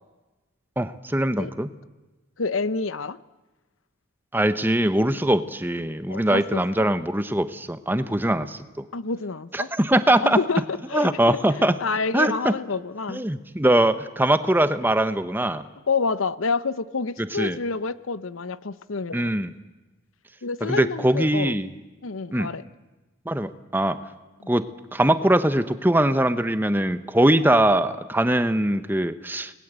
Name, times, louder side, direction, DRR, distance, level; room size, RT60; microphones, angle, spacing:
voice 1, 0.8-1.7 4.3-8.8 9.5-10.4 10.9-11.8 12.1-12.5 13.1-15.6 17.2-17.6 19.1-19.5 20.6-21.7 22.3-22.5 23.3-24.0 24.5-24.6 24.9-29.5, right 1 dB, 10° right, 11 dB, 1.0 m, -22 dB
voice 2, 2.4-3.2 6.1-6.6 8.9-9.7 10.2-11.4 11.8-13.2 15.9-19.3 20.4-21.5 22.0-22.6 24.4-24.5, left 4 dB, 85° left, 15 dB, 0.9 m, -28 dB
30.0 x 20.5 x 8.2 m, 1.2 s
head